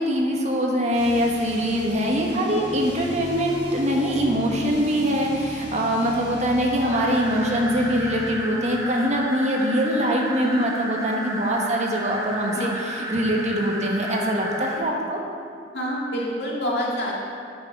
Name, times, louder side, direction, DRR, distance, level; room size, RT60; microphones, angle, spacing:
voice 1, 0.0-15.2, equal, 40° right, 0 dB, 1.2 m, -23 dB
sound 1, 0.9-8.5, equal, 40° left, 1.9 m, -38 dB
sound 2, 6.9-14.8, right 1 dB, 20° right, 0.9 m, -33 dB
voice 2, 15.7-17.1, equal, 70° left, -3 dB, 1.8 m, -27 dB
9.2 x 6.2 x 4.6 m, 2.3 s
head